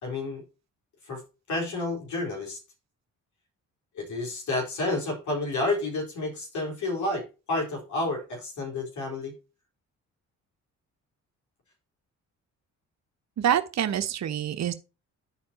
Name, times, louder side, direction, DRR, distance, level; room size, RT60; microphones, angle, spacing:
voice 1, 0.0-0.4 1.0-1.2 1.5-2.6 3.9-9.3, left 2 dB, 70° left, 3.9 m, -30 dB
voice 2, 13.4-14.7, right 10 dB, 60° right, 1.2 m, -26 dB
11.0 x 4.4 x 4.3 m
cardioid pair, 90°, 30 cm